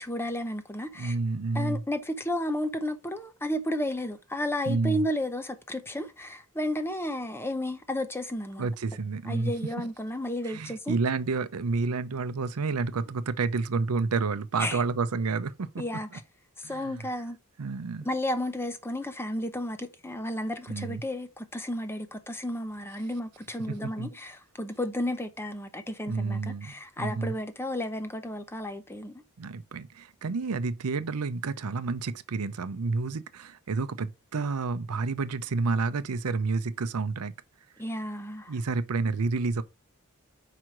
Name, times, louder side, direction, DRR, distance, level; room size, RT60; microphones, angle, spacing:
voice 1, 0.0-1.1 1.5-8.7 9.3-11.0 14.6-14.8 15.8-16.2 16.6-17.4 18.0-29.2 37.8-38.5, left 1 dB, 10° left, 0.8 m, -32 dB
voice 2, 1.0-1.8 4.7-5.0 8.6-9.5 10.4-15.8 16.6-17.1 17.6-18.1 20.7-21.0 23.7-24.1 26.1-27.4 29.4-37.3 38.5-39.6, right 4 dB, 85° right, 0.6 m, -30 dB
5.0 x 4.7 x 5.8 m
head